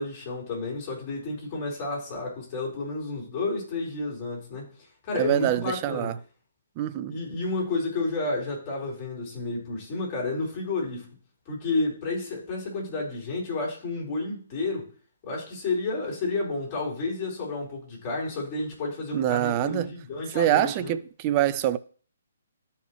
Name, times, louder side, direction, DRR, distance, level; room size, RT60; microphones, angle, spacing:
voice 1, 0.0-4.7 5.0-6.1 7.1-11.1 11.5-14.9 15.2-20.9, left 3 dB, 30° left, 4.5 m, -31 dB
voice 2, 5.2-6.1 6.8-7.2 19.1-19.9 20.3-21.8, right 12 dB, 30° right, 0.5 m, -25 dB
12.5 x 5.7 x 3.2 m
figure-of-eight pair, 130°, 0 cm